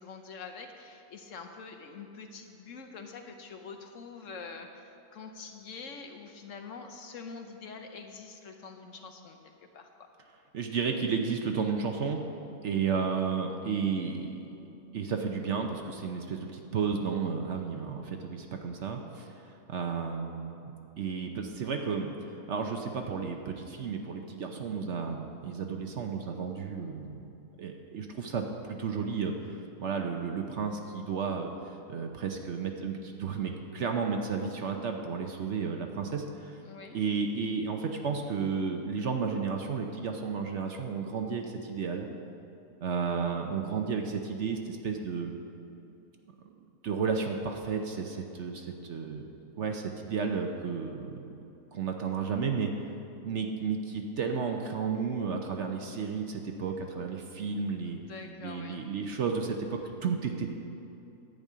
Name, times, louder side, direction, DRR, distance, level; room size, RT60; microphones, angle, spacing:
voice 1, 0.0-9.4 9.7-10.1 36.6-37.0 57.9-58.8, left 4 dB, 60° left, 5 dB, 1.0 m, -45 dB
voice 2, 10.5-12.2 12.6-14.5 14.9-19.3 19.7-22.1 22.5-27.3 27.6-31.5 31.9-36.6 36.9-42.1 42.8-45.3 46.8-49.3 49.6-51.2 51.7-52.7 53.2-58.0 58.4-60.5, right 5 dB, 60° right, 3 dB, 0.9 m, -32 dB
10.5 x 5.3 x 8.5 m, 2.9 s
omnidirectional pair, 1.6 m